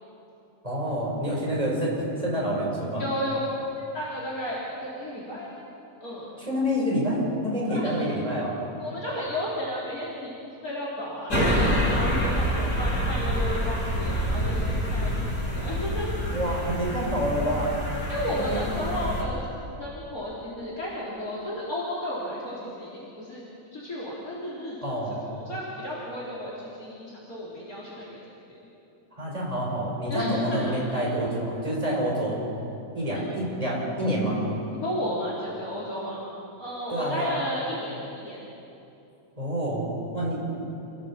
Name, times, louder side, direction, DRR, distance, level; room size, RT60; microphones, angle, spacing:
voice 1, 0.6-3.0 6.4-8.5 16.3-17.7 18.4-18.6 24.8-25.2 29.2-32.4 32.9-34.4 36.9-37.4 39.4-40.5, equal, 20° right, -4 dB, 5.6 m, -27 dB
voice 2, 3.0-3.4 3.9-5.5 6.0-6.3 7.7-7.9 8.8-10.3 10.6-16.3 18.1-19.4 19.8-23.4 23.7-24.8 25.1-28.2 30.1-31.1 34.7-36.2 36.6-38.4, equal, 60° left, -7 dB, 4.3 m, -33 dB
sound 1, 11.3-19.2, equal, 85° left, 3.9 m, -27 dB
27.5 x 16.5 x 7.5 m, 2.8 s
omnidirectional pair, 1.7 m